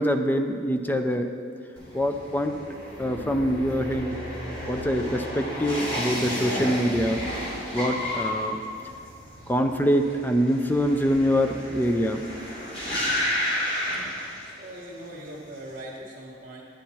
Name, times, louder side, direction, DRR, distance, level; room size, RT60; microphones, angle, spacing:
voice 1, 0.0-1.3 1.9-2.5 3.0-4.2 4.7-7.2 7.7-8.6 9.5-12.2, equal, 10° left, 6 dB, 0.4 m, -24 dB
sound 1, 1.8-14.8 15.1-15.7, equal, 30° left, 2.9 m, -32 dB
voice 2, 14.4-16.6, right 1 dB, 50° right, -7 dB, 1.2 m, -40 dB
9.9 x 9.0 x 4.3 m, 2.3 s
head